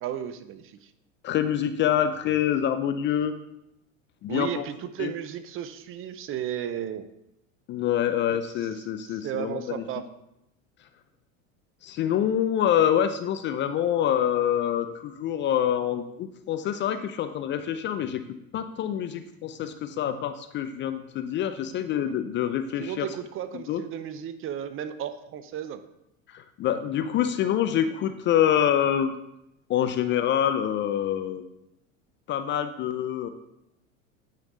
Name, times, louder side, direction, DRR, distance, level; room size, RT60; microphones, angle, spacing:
voice 1, 0.0-0.9 4.3-7.1 9.1-10.0 22.0-22.1 22.8-25.8, right 10 dB, 35° right, 12 dB, 0.5 m, -34 dB
voice 2, 1.2-3.3 4.2-4.7 5.0-5.1 7.7-9.8 11.8-18.2 18.5-23.1 23.5-23.8 26.3-29.1 29.7-31.4 32.3-33.3, left 10 dB, 30° left, 10 dB, 0.4 m, -26 dB
9.2 x 5.2 x 3.8 m, 0.85 s
hypercardioid pair, 90°, 40 cm